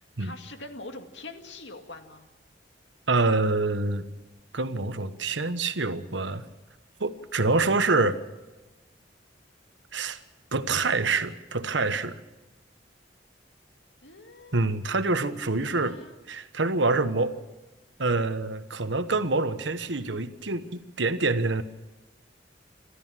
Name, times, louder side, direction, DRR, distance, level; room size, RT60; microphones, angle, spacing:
voice 1, 0.0-2.3 14.0-14.7 15.6-16.2, left 2 dB, 75° left, 6 dB, 2.2 m, -44 dB
voice 2, 3.1-4.1 4.5-6.4 7.0-8.2 9.9-10.2 10.5-12.2 14.5-16.0 16.3-17.3 18.0-21.6, right 3 dB, 80° right, 11 dB, 1.3 m, -26 dB
27.5 x 13.5 x 7.5 m, 1.1 s
head